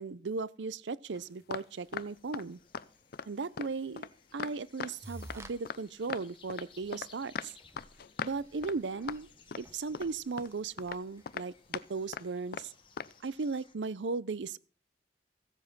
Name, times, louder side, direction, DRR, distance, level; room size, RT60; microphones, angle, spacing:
voice 1, 0.0-2.6 3.3-7.5 8.2-9.3 9.6-12.7 13.2-14.6, right 4 dB, 80° right, 0.6 m, -37 dB
sound 1, 1.1-1.6 1.9-2.5 2.7-2.9 3.1-3.3 3.6-4.9 5.2-5.8 6.1-7.1 7.3-8.4 8.6-8.8 9.1-9.2 9.5-10.1 10.4-10.5 10.8-11.0 11.3-11.8 12.1-12.3 12.5-12.7 13.0-13.1, left 6 dB, 55° left, 0.5 m, -39 dB
sound 2, 1.8-13.8, left 5 dB, 30° left, 1.5 m, -62 dB
sound 3, 5.0-5.5 6.0-6.2 6.8-6.9 7.2-7.3 7.6-11.3, right 1 dB, 15° right, 1.0 m, -51 dB
15.5 x 7.6 x 5.9 m
head